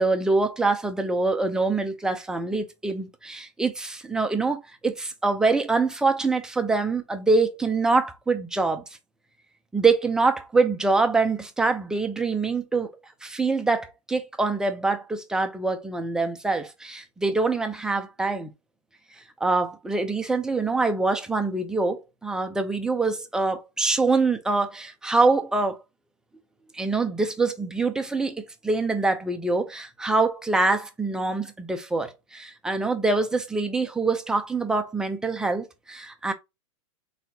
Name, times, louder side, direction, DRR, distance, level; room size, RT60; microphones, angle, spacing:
voice 1, 0.0-8.8 9.7-13.0 13.2-18.5 19.4-25.8 26.7-36.3, right 3 dB, 5° right, 0.5 m, -25 dB
4.0 x 3.6 x 2.8 m
supercardioid pair, 150°, 17 cm